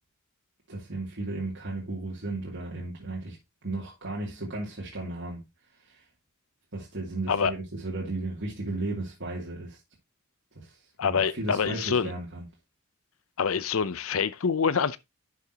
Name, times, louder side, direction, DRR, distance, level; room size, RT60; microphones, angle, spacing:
voice 1, 0.7-3.4 3.6-5.4 5.8-6.0 6.7-9.8 10.5-12.5, right 2 dB, 60° right, 2.7 m, -35 dB
voice 2, 11.0-12.1 13.4-15.0, left 6 dB, 70° left, 0.6 m, -26 dB
11.0 x 6.8 x 2.9 m
head